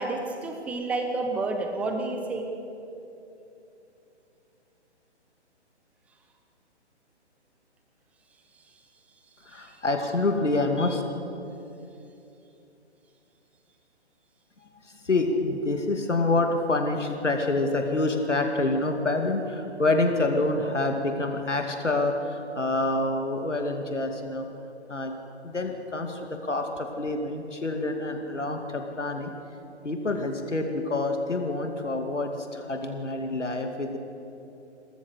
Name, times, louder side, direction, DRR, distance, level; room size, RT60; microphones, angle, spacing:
voice 1, 0.0-2.4 9.5-9.6, right 3 dB, 5° right, 4 dB, 0.8 m, -30 dB
voice 2, 9.4-11.0 14.8-24.5 24.9-25.2 25.4-29.3 29.8-34.0, left 2 dB, 90° left, 4 dB, 2.5 m, -27 dB
28.0 x 14.0 x 8.2 m, 2.9 s
figure-of-eight pair, 145°, 35 cm